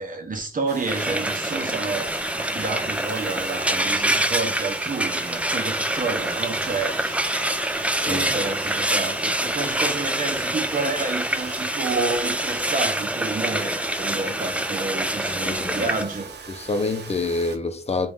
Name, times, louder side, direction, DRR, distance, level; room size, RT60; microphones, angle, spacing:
voice 1, 0.0-7.5 8.0-16.3, right 3 dB, 50° right, 0.9 m, -30 dB
Domestic sounds home sounds, 0.7-17.6, right 5 dB, 90° right, 0.6 m, -40 dB
Frying (food), 0.9-16.0, right 1 dB, 10° right, 0.4 m, -26 dB
voice 2, 15.3-15.9 16.5-18.1, left 3 dB, 40° left, 0.6 m, -27 dB
3.8 x 2.4 x 3.5 m
wide cardioid pair, 85°, 17 cm